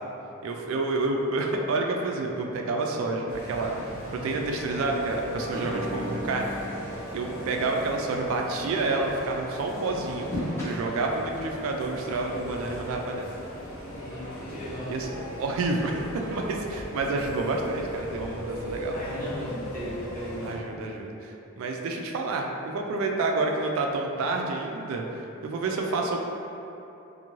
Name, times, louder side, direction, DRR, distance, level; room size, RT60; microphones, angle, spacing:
voice 1, 0.4-3.7 4.1-6.5 7.1-13.3 14.9-15.1 15.4-19.0 20.4-26.2, right 3 dB, 75° right, 2 dB, 0.3 m, -29 dB
sound 1, 3.3-20.6, equal, 80° left, 0.6 m, -38 dB
sound 2, 5.3-8.9 9.5-10.7 12.3-12.4 12.9-13.0 13.2-13.3 13.6-13.7, equal, 10° left, 0.7 m, -37 dB
voice 2, 13.8-14.9 18.9-20.6, equal, 40° left, -13 dB, 1.2 m, -37 dB
2.6 x 2.5 x 2.9 m, 2.9 s
head